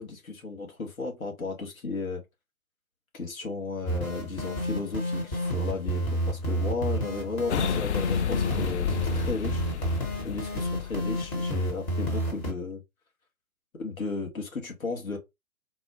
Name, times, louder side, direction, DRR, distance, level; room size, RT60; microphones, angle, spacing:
voice 1, 0.0-2.2 3.1-9.6 10.2-12.8 13.7-15.2, left 3 dB, 70° left, 1.5 m, -34 dB
sound 1, 3.9-12.5, equal, 20° left, 1.0 m, -30 dB
sound 2, 7.5-11.7, left 9 dB, 55° left, 0.5 m, -31 dB
4.1 x 2.3 x 2.9 m
figure-of-eight pair, 125°, 43 cm